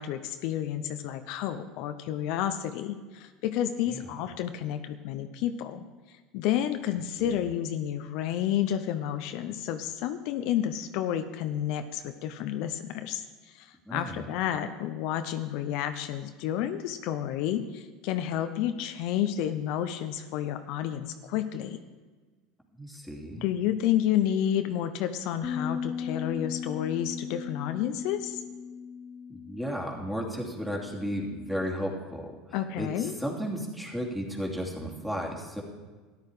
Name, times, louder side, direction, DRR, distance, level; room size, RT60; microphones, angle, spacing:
voice 1, 0.0-21.8 23.4-28.4 32.5-33.1, left 10 dB, 65° left, 9 dB, 0.7 m, -30 dB
voice 2, 13.8-14.3 22.8-23.5 29.3-35.6, equal, 5° right, -1 dB, 2.7 m, -34 dB
sound 1, 25.4-31.7, left 6 dB, 40° left, 0.9 m, -38 dB
13.0 x 10.5 x 5.0 m, 1.3 s
supercardioid pair, 100°, 0 cm